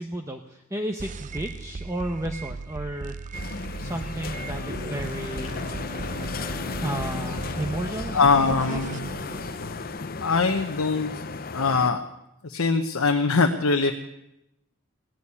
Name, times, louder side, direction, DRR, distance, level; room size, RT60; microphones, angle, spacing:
voice 1, 0.0-3.5 3.8-5.6 6.8-8.8, right 1 dB, 15° right, 3 dB, 0.8 m, -33 dB
sound 1, 1.0-10.0, right 4 dB, 35° right, 0.5 m, -37 dB
sound 2, 3.3-11.9, left 4 dB, 45° left, 0.6 m, -35 dB
Bowed string instrument, 4.2-9.1, left 3 dB, 20° left, 3.0 m, -40 dB
voice 2, 8.1-9.1 10.2-11.1 11.5-12.0 12.4-13.9, left 4 dB, 90° left, 4 dB, 1.0 m, -22 dB
17.5 x 8.6 x 9.5 m, 0.87 s
head